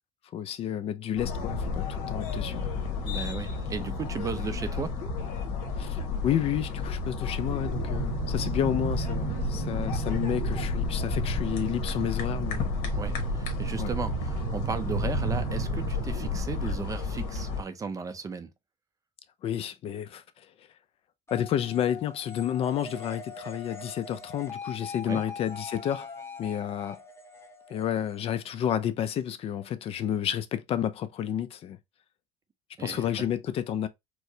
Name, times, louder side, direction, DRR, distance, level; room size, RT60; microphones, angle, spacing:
voice 1, 0.3-2.8 5.8-12.7 13.8-13.9 16.6-16.7 19.4-20.5 21.3-26.1 26.4-27.0 27.7-31.8 32.8-33.9, left 10 dB, 45° left, 0.4 m, -30 dB
sound 1, 1.2-17.6, left 4 dB, 80° left, 1.1 m, -32 dB
voice 2, 3.0-4.9 12.9-18.5 25.0-25.2 32.8-33.3, right 5 dB, 25° right, 0.4 m, -35 dB
sound 2, 7.7-16.4, right 5 dB, 65° right, 0.8 m, -33 dB
sound 3, 21.3-28.8, left 4 dB, 20° left, 0.8 m, -42 dB
4.5 x 2.0 x 2.6 m
cardioid pair, 125°, 14 cm